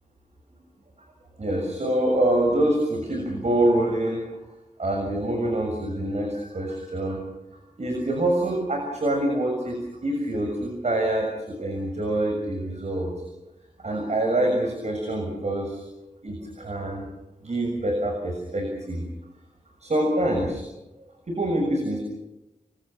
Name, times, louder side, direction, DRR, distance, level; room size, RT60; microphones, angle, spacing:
voice 1, 1.4-4.2 4.8-7.2 7.8-13.2 13.8-15.8 16.2-17.1 17.4-19.0 19.8-20.6 21.3-22.0, right 1 dB, 55° right, 2 dB, 6.8 m, -25 dB
28.5 x 24.5 x 6.1 m, 0.96 s
wide cardioid pair, 70°, 14 cm